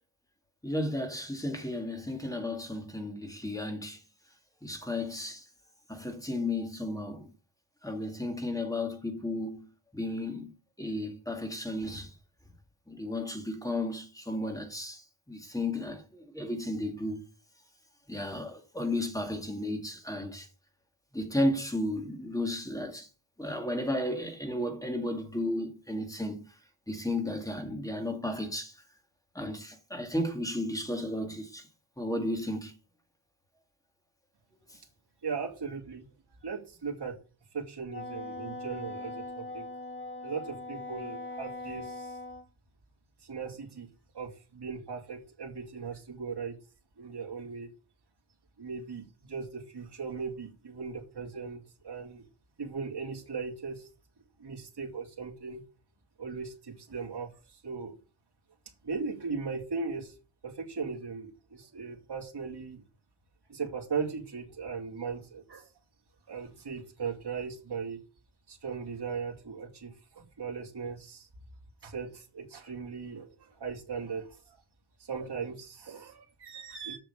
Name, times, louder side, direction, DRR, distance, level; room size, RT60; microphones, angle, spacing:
voice 1, 0.6-4.0 4.6-5.4 5.9-7.3 7.8-9.7 9.9-12.1 12.9-17.2 18.1-20.5 21.1-23.1 23.4-26.5 26.9-28.8 29.3-31.7 32.0-32.8, left 1 dB, 5° left, 2.1 m, -33 dB
voice 2, 35.2-36.0 36.4-37.2 37.5-39.7 40.2-42.2 43.2-43.9 44.1-46.6 47.0-47.7 48.6-52.3 52.6-53.9 54.4-55.6 56.2-57.9 58.8-60.1 60.4-62.8 63.5-65.7 66.3-68.0 68.5-71.3 71.8-74.6 75.0-77.0, right 5 dB, 50° right, 2.8 m, -38 dB
Wind instrument woodwind instrument, 37.9-42.4, left 2 dB, 25° left, 2.3 m, -41 dB
7.6 x 6.8 x 6.8 m
wide cardioid pair, 120°, 49 cm